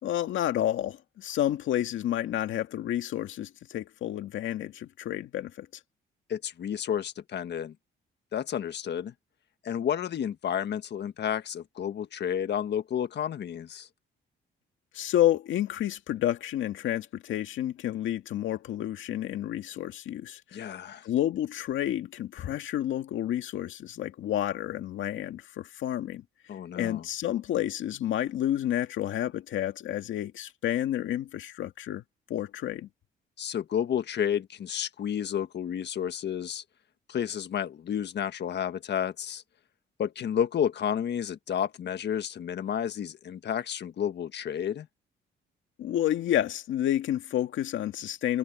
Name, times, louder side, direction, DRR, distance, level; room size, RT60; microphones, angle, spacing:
voice 1, 0.0-5.7 14.9-20.7 21.0-26.2 26.8-32.0 32.3-32.9 45.8-48.4, left 12 dB, 80° left, 2.1 m, -30 dB
voice 2, 6.3-7.7 8.3-9.1 9.6-13.9 20.5-21.1 26.5-27.0 33.4-36.6 37.1-39.4 40.0-44.9, left 9 dB, 60° left, 1.5 m, -31 dB
cardioid pair, 90°, 20 cm